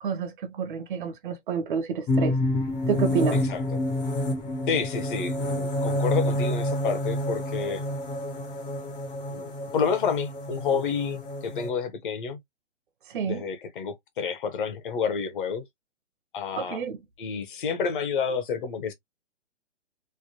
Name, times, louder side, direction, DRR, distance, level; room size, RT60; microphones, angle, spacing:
voice 1, 0.0-2.3 2.9-3.4 13.1-13.5 16.6-17.0, right 6 dB, 45° right, 0.7 m, -28 dB
sound 1, 2.1-11.7, left 1 dB, 15° left, 0.6 m, -28 dB
voice 2, 4.7-7.8 9.3-12.4 13.2-15.6 16.3-16.8 17.2-18.9, left 6 dB, 45° left, 0.8 m, -29 dB
3.3 x 2.1 x 2.8 m
hypercardioid pair, 145°, 36 cm